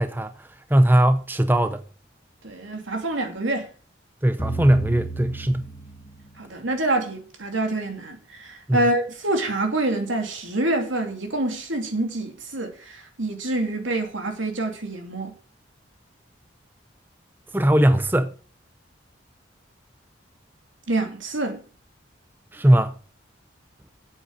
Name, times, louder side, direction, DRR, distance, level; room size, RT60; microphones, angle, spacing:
voice 1, 0.0-1.8 4.2-5.7 8.7-8.9 17.5-18.4 22.5-23.0, right 1 dB, 10° right, 0.6 m, -20 dB
voice 2, 2.4-3.7 6.4-15.3 20.9-21.6, right 2 dB, 90° right, 2.8 m, -26 dB
sound 1, 4.4-6.6, right 3 dB, 30° left, 2.5 m, -34 dB
8.3 x 8.2 x 6.5 m
head